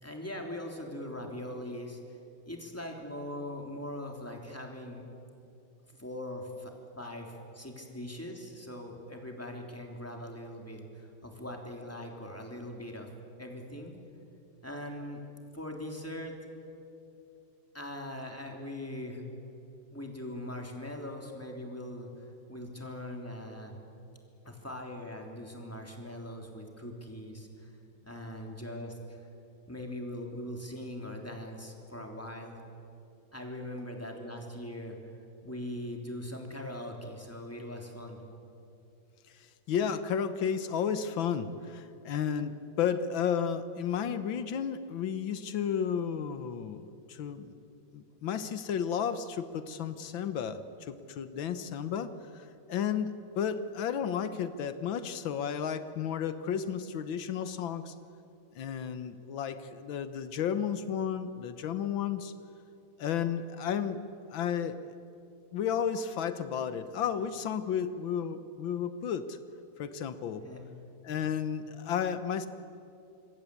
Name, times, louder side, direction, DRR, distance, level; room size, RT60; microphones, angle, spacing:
voice 1, 0.0-2.2 2.4-5.0 5.9-13.1 13.4-13.9 14.6-15.2 15.5-16.3 17.7-19.2 19.9-23.7 24.4-27.8 28.0-29.2 29.7-32.6 33.3-35.1 35.4-38.2 70.4-70.6, left 1 dB, 5° left, 1 dB, 3.4 m, -41 dB
voice 2, 39.3-47.5 47.9-57.9 58.6-62.3 63.0-64.0 64.3-64.8 65.5-69.4 69.8-70.4 71.0-72.5, left 8 dB, 85° left, 11 dB, 1.8 m, -33 dB
27.0 x 22.0 x 8.5 m, 2.7 s
omnidirectional pair, 2.1 m